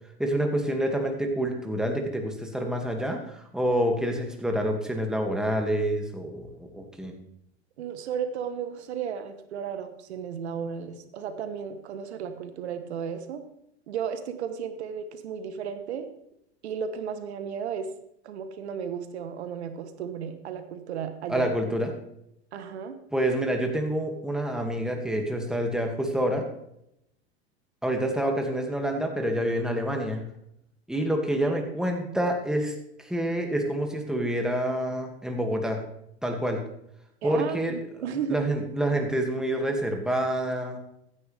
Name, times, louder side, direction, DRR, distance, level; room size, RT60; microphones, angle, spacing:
voice 1, 0.2-7.1 21.3-21.9 23.1-26.5 27.8-30.2 30.9-32.7 33.0-35.8 36.2-36.6 37.2-37.8 38.1-40.8, right 1 dB, ahead, 2 dB, 2.2 m, -27 dB
voice 2, 7.8-13.4 13.9-16.1 16.6-17.9 18.2-21.5 22.5-23.0 31.5-31.6 37.2-38.4, right 7 dB, 85° right, 10 dB, 1.2 m, -34 dB
15.0 x 9.8 x 3.5 m, 0.78 s
hypercardioid pair, 100°, 32 cm